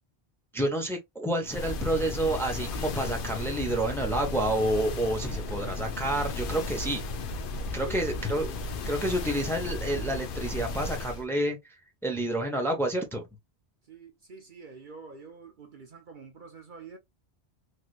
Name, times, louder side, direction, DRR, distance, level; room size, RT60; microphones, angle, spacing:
voice 1, 0.5-7.0 7.7-8.5 8.9-11.7 12.0-13.2, right 1 dB, ahead, 0.8 m, -29 dB
sound 1, 1.5-11.2, left 2 dB, 60° left, 0.7 m, -34 dB
voice 2, 7.8-8.5 13.9-17.0, right 4 dB, 50° right, 0.8 m, -47 dB
3.3 x 2.9 x 2.3 m
omnidirectional pair, 1.1 m